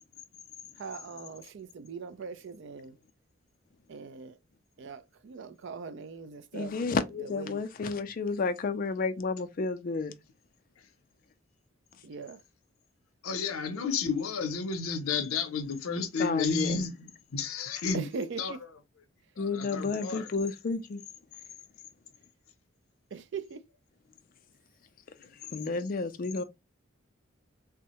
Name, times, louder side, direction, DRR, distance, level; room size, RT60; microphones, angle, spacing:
voice 1, 0.8-3.0 3.9-4.4 4.8-7.6 8.0-8.1 12.0-12.4 17.9-18.6 23.1-23.6, right 5 dB, 60° right, 0.4 m, -41 dB
voice 2, 6.5-10.1 16.2-16.9 19.4-21.0 25.5-26.4, left 4 dB, 40° left, 0.3 m, -31 dB
voice 3, 13.2-18.0 18.4-18.5 19.4-20.3, left 5 dB, 85° left, 0.6 m, -32 dB
3.4 x 2.1 x 2.8 m
head